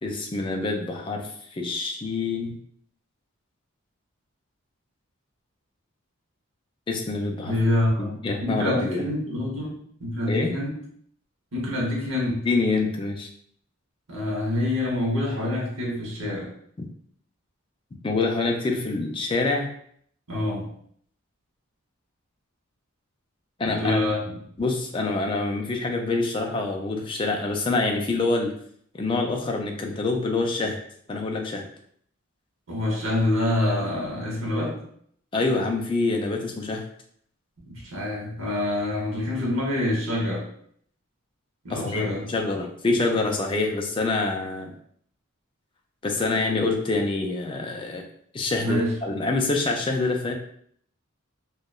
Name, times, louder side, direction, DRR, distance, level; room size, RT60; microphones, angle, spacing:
voice 1, 0.0-2.5 6.9-7.6 8.0-9.1 10.3-10.5 12.4-13.3 18.0-19.7 23.6-24.0 24.6-28.5 28.9-30.8 31.1-31.6 35.3-36.8 41.7-44.7 46.0-48.0 48.3-50.3, left 3 dB, 25° left, 2 dB, 0.3 m, -26 dB
voice 2, 7.4-8.1 8.4-10.8 11.5-12.5 14.1-16.5 20.3-20.7 23.6-24.4 32.7-34.8 37.7-40.5 41.6-42.3 48.6-48.9, left 1 dB, 70° right, -3 dB, 0.9 m, -26 dB
2.7 x 2.1 x 2.3 m, 0.64 s
head